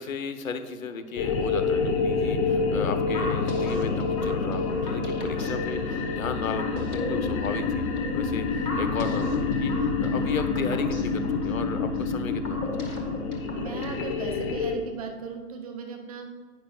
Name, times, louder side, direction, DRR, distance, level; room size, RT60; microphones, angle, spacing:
voice 1, 0.0-12.8, left 5 dB, 60° left, 9 dB, 0.9 m, -35 dB
sound 1, 1.2-14.8, left 4 dB, 20° left, 0.7 m, -27 dB
sound 2, 3.1-14.2, left 1 dB, 80° left, 1.7 m, -39 dB
voice 2, 13.5-16.3, right 5 dB, 25° right, 3 dB, 0.6 m, -37 dB
11.0 x 9.2 x 2.4 m, 1.5 s
figure-of-eight pair, 120°, 45 cm